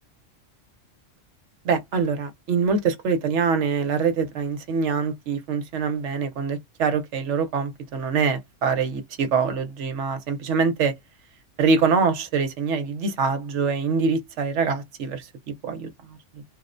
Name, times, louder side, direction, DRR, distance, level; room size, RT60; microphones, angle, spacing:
voice 1, 1.6-10.9 11.6-16.4, right 5 dB, 70° right, 1.0 m, -24 dB
2.4 x 2.1 x 2.5 m
omnidirectional pair, 1.3 m